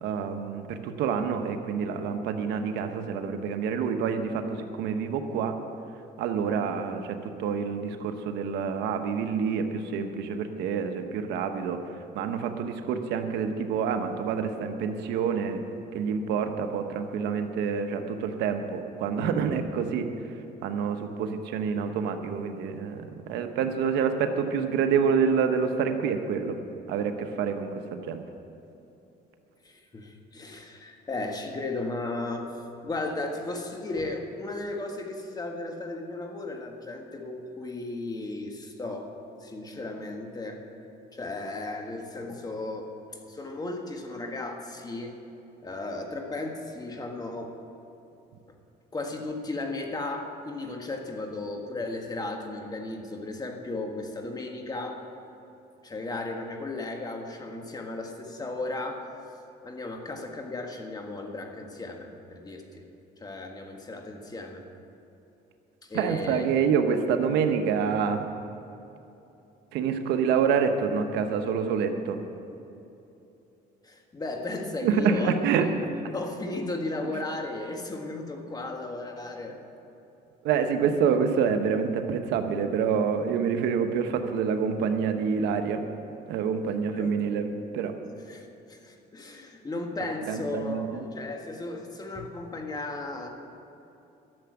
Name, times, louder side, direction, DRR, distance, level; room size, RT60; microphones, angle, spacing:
voice 1, 0.0-5.5 6.2-11.8 12.1-15.6 15.9-20.1 20.6-26.6 26.9-28.2 65.9-68.2 69.7-72.2 74.8-75.7 80.4-85.8 86.3-87.9 90.3-91.1, right 6 dB, 85° right, 6 dB, 1.0 m, -27 dB
voice 2, 29.6-40.7 41.1-42.9 43.3-45.2 45.6-47.6 48.9-55.0 55.8-59.1 59.6-62.8 63.2-64.6 65.8-66.4 73.8-75.8 76.1-79.6 86.9-87.3 88.3-93.3, left 2 dB, 25° left, 3 dB, 1.6 m, -35 dB
12.5 x 7.0 x 9.5 m, 2.9 s
cardioid pair, 110°, 17 cm